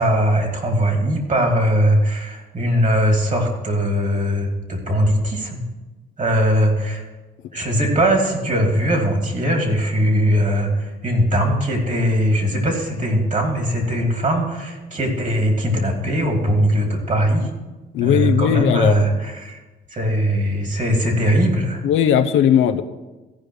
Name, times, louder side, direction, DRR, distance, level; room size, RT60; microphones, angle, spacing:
voice 1, 0.0-5.6 6.2-7.0 7.5-17.5 18.0-19.6 19.9-21.8, equal, 40° right, 2 dB, 2.7 m, -20 dB
voice 2, 17.9-19.1 21.8-22.8, left 9 dB, 85° left, 8 dB, 0.7 m, -17 dB
14.5 x 5.1 x 6.4 m, 1.1 s
cardioid pair, 90°, 20 cm